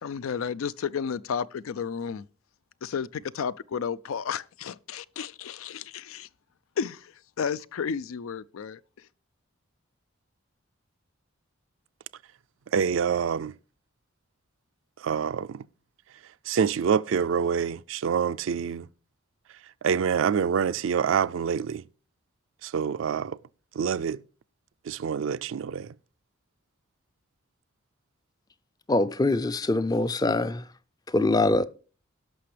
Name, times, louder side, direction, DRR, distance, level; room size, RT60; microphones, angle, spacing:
voice 1, 0.0-2.2 2.8-6.3 6.8-8.8, left 6 dB, 90° left, 0.4 m, -32 dB
voice 2, 12.7-13.5 15.0-15.6 16.5-18.9 19.8-21.8 22.6-23.4 23.8-24.2 24.9-25.9, right 7 dB, 70° right, 0.4 m, -26 dB
voice 3, 28.9-30.6 31.1-31.7, left 2 dB, 20° left, 0.4 m, -23 dB
17.5 x 6.0 x 3.3 m
head